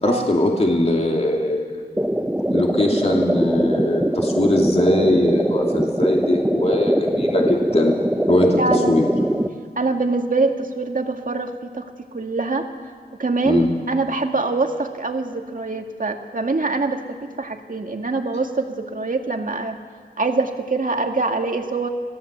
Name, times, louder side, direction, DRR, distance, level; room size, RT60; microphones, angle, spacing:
voice 1, 0.0-1.9 2.5-8.0 8.3-8.6 8.9-9.1 13.4-13.7, left 1 dB, 40° left, 0 dB, 2.7 m, -20 dB
sound 1, 2.0-9.5, right 1 dB, 5° right, 1.0 m, -22 dB
voice 2, 8.6-9.0 9.8-12.7 13.2-19.7 20.2-21.9, right 3 dB, 55° right, 4 dB, 2.1 m, -24 dB
27.5 x 17.0 x 8.2 m, 2.2 s
wide cardioid pair, 70°, 17 cm